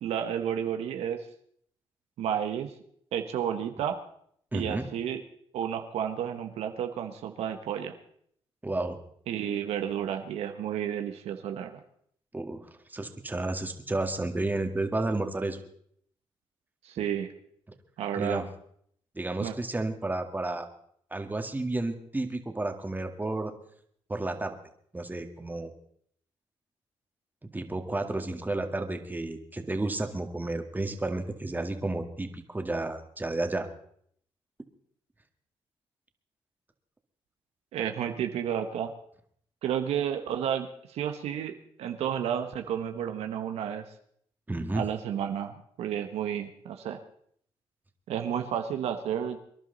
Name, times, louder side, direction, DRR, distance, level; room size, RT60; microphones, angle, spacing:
voice 1, 0.0-1.3 2.2-2.7 3.1-4.0 4.5-5.2 5.5-7.9 9.3-11.8 16.8-17.3 18.0-18.4 19.4-19.5 37.7-38.9 39.6-43.8 44.7-47.0 48.1-49.4, right 9 dB, 85° right, 6 dB, 1.1 m, -31 dB
voice 2, 4.5-4.9 8.6-9.0 12.3-15.6 18.2-18.5 19.2-20.7 21.1-23.5 24.1-24.6 24.9-25.7 27.5-33.7 44.5-44.8, right 2 dB, 15° right, 6 dB, 2.0 m, -31 dB
25.0 x 11.0 x 4.0 m, 0.65 s
cardioid pair, 70°, 10 cm